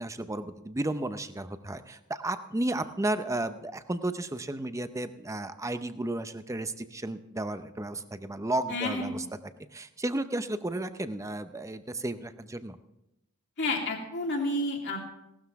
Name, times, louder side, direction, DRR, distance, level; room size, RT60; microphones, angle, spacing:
voice 1, 0.0-9.2 9.7-12.8, right 1 dB, 15° right, 10 dB, 0.6 m, -33 dB
voice 2, 8.7-9.1 13.6-15.0, left 2 dB, 55° left, 0 dB, 2.8 m, -30 dB
17.5 x 12.5 x 3.6 m, 0.87 s
head